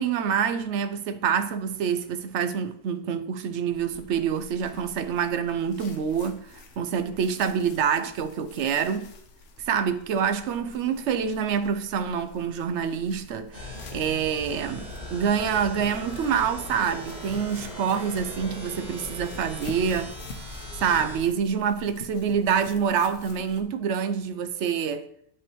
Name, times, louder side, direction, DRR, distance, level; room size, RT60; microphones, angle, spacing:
voice 1, 0.0-9.1 9.7-20.2 20.8-25.1, right 7 dB, 70° right, 0.8 m, -26 dB
sound 1, 3.7-23.6, left 3 dB, 70° left, 1.1 m, -47 dB
sound 2, 13.5-21.2, left 1 dB, 55° right, 2.7 m, -39 dB
7.9 x 5.5 x 3.1 m
omnidirectional pair, 1.3 m